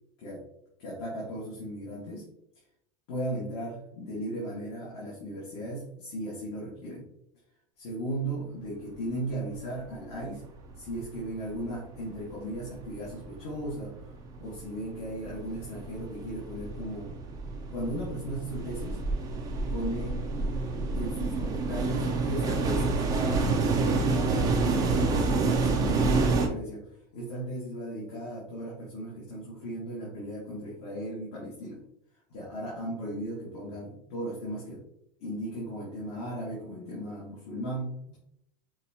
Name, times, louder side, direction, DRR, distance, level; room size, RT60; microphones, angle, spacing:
voice 1, 0.8-2.2 3.1-7.1 7.8-10.4 10.7-17.1 17.7-19.0 19.7-20.3 20.9-31.8 32.3-34.8 35.2-38.2, right 1 dB, 50° left, -6 dB, 1.4 m, -36 dB
sound 1, 9.8-9.9 10.2-11.2 11.5-26.5, right 3 dB, 15° right, 0.3 m, -29 dB
5.4 x 2.3 x 2.7 m, 0.76 s
supercardioid pair, 160°, 21 cm